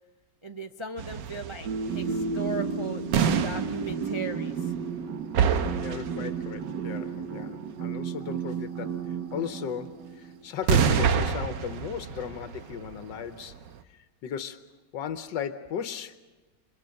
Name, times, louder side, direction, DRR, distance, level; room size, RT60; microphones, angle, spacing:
voice 1, 0.4-4.7, right 3 dB, 40° right, 5 dB, 0.4 m, -37 dB
sound 1, 1.0-5.0 5.3-6.5 10.6-13.7, right 7 dB, 90° right, 1.7 m, -27 dB
sound 2, 1.6-10.4, right 5 dB, 70° right, 1.8 m, -33 dB
voice 2, 5.7-9.0 9.3-13.6 14.2-16.2, left 8 dB, 85° left, 10 dB, 1.6 m, -36 dB
30.0 x 24.0 x 6.4 m, 1.2 s
omnidirectional pair, 1.9 m